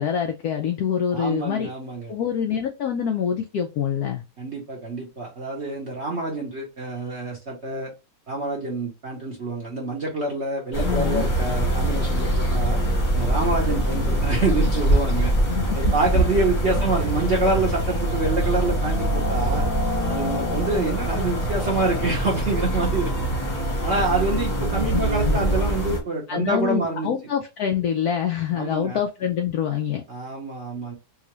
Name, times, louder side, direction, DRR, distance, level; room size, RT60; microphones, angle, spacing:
voice 1, 0.0-1.7 2.1-4.2 10.8-11.3 15.5-15.8 16.1-16.3 24.9-25.4 26.3-30.0, left 8 dB, 80° left, 0.8 m, -25 dB
voice 2, 1.1-2.1 4.4-7.9 8.3-12.8 13.1-15.3 15.8-19.7 20.1-23.3 23.8-27.1 28.6-29.0 30.1-30.9, right 2 dB, 50° right, 0.8 m, -26 dB
sound 1, 10.7-26.0, right 1 dB, 35° left, 0.8 m, -23 dB
3.7 x 2.4 x 3.0 m
omnidirectional pair, 2.2 m